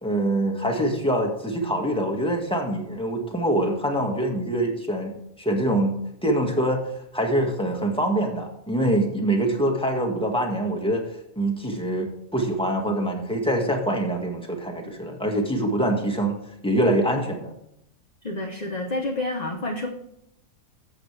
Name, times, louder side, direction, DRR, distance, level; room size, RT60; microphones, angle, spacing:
voice 1, 0.0-6.8 7.1-11.0 11.4-16.4 16.6-17.5, right 1 dB, 5° left, 1 dB, 1.7 m, -24 dB
voice 2, 18.2-19.9, left 2 dB, 35° left, 2 dB, 1.0 m, -29 dB
14.0 x 7.6 x 3.3 m, 0.77 s
omnidirectional pair, 1.4 m